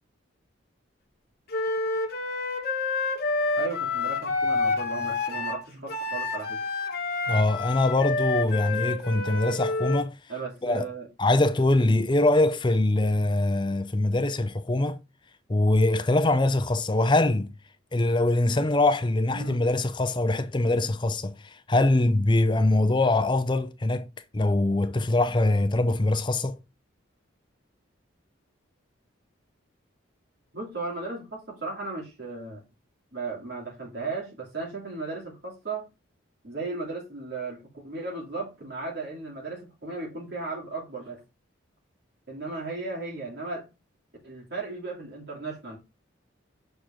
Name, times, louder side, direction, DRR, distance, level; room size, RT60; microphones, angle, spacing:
Wind instrument woodwind instrument, 1.5-10.0, left 3 dB, 50° left, 1.1 m, -28 dB
voice 1, 3.5-6.6 10.3-11.1 19.3-19.6 30.5-32.6 33.1-35.9 36.4-41.2 42.3-43.7 44.2-45.8, right 3 dB, 55° right, 2.9 m, -35 dB
voice 2, 7.3-10.1 10.6-10.9 11.2-15.0 15.5-17.5 17.9-24.1 24.3-26.6, left 2 dB, 25° left, 0.5 m, -23 dB
6.5 x 4.5 x 3.7 m
head